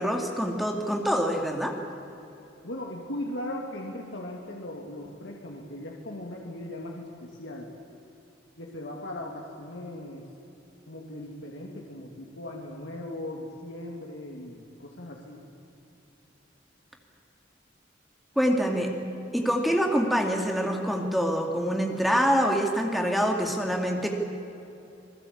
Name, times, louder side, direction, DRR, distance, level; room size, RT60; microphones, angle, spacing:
voice 1, 0.0-1.8 18.4-18.9 19.3-24.1, equal, ahead, 2 dB, 2.4 m, -25 dB
voice 2, 2.6-7.7 8.6-10.3 10.9-15.4 18.6-18.8, left 1 dB, 80° left, -1 dB, 2.6 m, -38 dB
27.5 x 19.5 x 8.6 m, 2.9 s
head